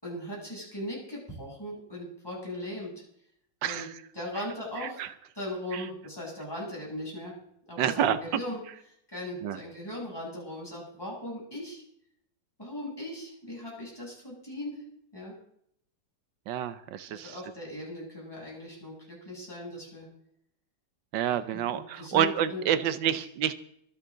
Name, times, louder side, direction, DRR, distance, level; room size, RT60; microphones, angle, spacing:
voice 1, 0.0-2.9 3.6-3.9 4.1-5.0 5.3-7.3 7.7-8.6 9.1-11.8 12.6-14.8 15.1-15.4 17.1-20.1 21.5-23.1, left 1 dB, 10° left, -4 dB, 8.1 m, -38 dB
voice 2, 7.8-8.2 9.4-9.6 16.5-17.3 21.1-23.5, right 10 dB, 90° right, 13 dB, 1.5 m, -28 dB
24.0 x 10.5 x 3.9 m, 0.68 s
omnidirectional pair, 1.9 m